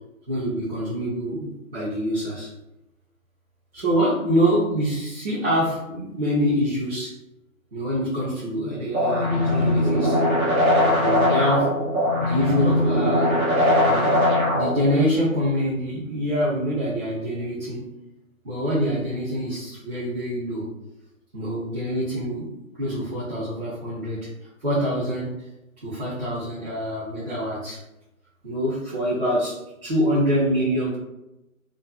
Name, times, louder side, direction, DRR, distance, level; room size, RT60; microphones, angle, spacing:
voice 1, 0.3-2.5 3.7-7.1 7.7-10.3 10.8-11.7 12.2-13.3 13.9-14.2 14.5-17.9 18.4-20.7 21.3-22.5 22.8-24.3 24.6-25.3 25.8-27.8 28.4-31.0, equal, 45° right, -9 dB, 0.7 m, -25 dB
sound 1, 8.9-14.9, left 1 dB, 80° right, 1.0 m, -20 dB
2.5 x 2.3 x 2.3 m, 0.92 s
figure-of-eight pair, 145°, 42 cm